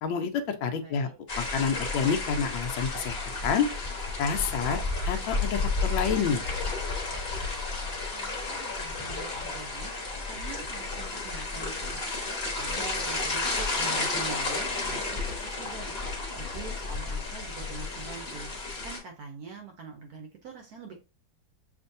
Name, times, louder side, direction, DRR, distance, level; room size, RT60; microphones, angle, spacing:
voice 1, 0.0-1.1 1.4-3.7 4.2-4.8 5.1-6.4, left 6 dB, 80° left, 6 dB, 1.4 m, -28 dB
voice 2, 0.8-1.3 8.0-9.9 10.3-15.9 16.3-18.5 18.8-21.0, right 5 dB, 65° right, 3 dB, 0.9 m, -44 dB
sound 1, 1.3-19.0, left 3 dB, 35° left, 1.4 m, -32 dB
7.0 x 2.6 x 2.6 m, 0.32 s
omnidirectional pair, 2.2 m